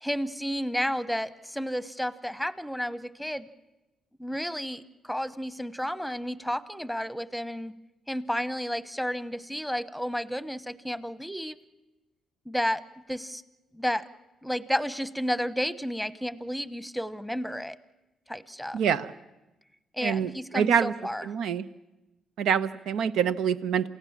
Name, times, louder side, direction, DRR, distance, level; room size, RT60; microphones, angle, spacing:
voice 1, 0.0-3.5 4.2-7.7 8.1-11.6 12.5-12.8 13.1-13.4 13.7-14.1 14.4-17.8 18.3-18.8 19.9-21.3, equal, ahead, 14 dB, 1.0 m, -31 dB
voice 2, 18.7-19.1 20.0-20.9 21.2-21.6 22.4-23.9, right 8 dB, 80° right, 12 dB, 0.9 m, -26 dB
28.5 x 16.0 x 7.4 m, 1.0 s
cardioid pair, 90°, 0 cm